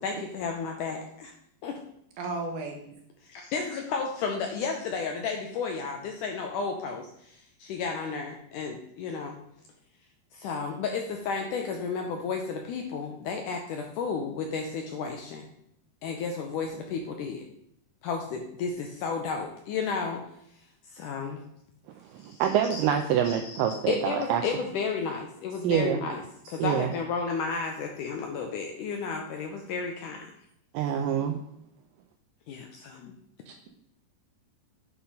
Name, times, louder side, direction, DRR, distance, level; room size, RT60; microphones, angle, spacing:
voice 1, 0.0-1.3 1.6-1.8 3.2-9.4 10.3-15.5 16.0-17.4 18.0-20.2 20.9-21.4 22.2-22.4 22.7-22.8 23.2-26.2 26.5-30.3 32.5-33.1, left 5 dB, 75° left, 3 dB, 1.9 m, -32 dB
voice 2, 2.2-2.9 33.5-33.7, right 2 dB, 70° right, 3 dB, 2.2 m, -35 dB
voice 3, 22.1-24.4 25.6-26.0 26.6-26.9 30.7-31.4, right 9 dB, 85° right, 5 dB, 2.0 m, -26 dB
8.7 x 4.0 x 5.4 m, 0.74 s
omnidirectional pair, 4.4 m